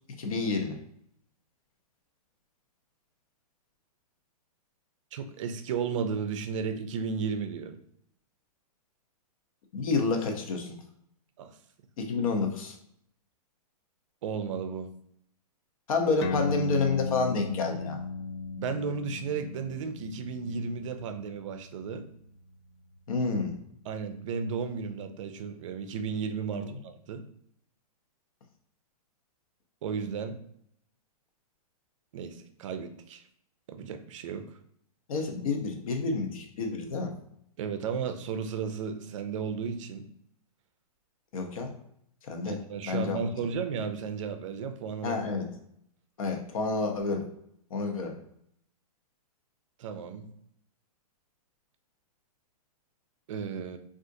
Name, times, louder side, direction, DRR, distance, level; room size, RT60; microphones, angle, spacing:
voice 1, 0.2-0.8 9.7-10.8 12.0-12.8 15.9-18.0 23.1-23.6 26.5-26.6 35.1-37.1 41.3-41.7 42.3-42.6 42.9-43.2 45.0-45.5 46.2-47.3 47.7-48.2, left 4 dB, 60° left, 4 dB, 0.7 m, -29 dB
voice 2, 5.1-7.8 11.4-11.5 14.2-14.9 18.6-22.1 23.9-27.2 29.8-30.4 32.1-33.2 33.7-34.5 37.6-40.1 42.4-45.2 49.8-50.3 53.3-53.8, right 6 dB, 55° right, 7 dB, 0.4 m, -34 dB
sound 1, 16.2-23.1, left 4 dB, 45° left, 0.4 m, -36 dB
3.6 x 2.4 x 2.6 m, 0.72 s
hypercardioid pair, 155°, 20 cm